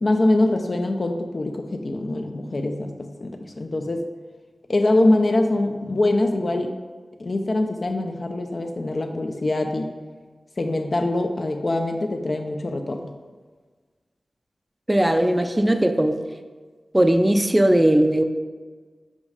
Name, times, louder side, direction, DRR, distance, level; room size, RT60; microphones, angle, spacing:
voice 1, 0.0-4.0 4.7-6.7 7.2-9.9 10.6-13.1, left 2 dB, 50° left, 4 dB, 0.5 m, -23 dB
voice 2, 14.9-16.1 16.9-18.2, right 1 dB, 10° right, 6 dB, 0.5 m, -18 dB
5.3 x 5.2 x 4.9 m, 1.4 s
wide cardioid pair, 90°, 0 cm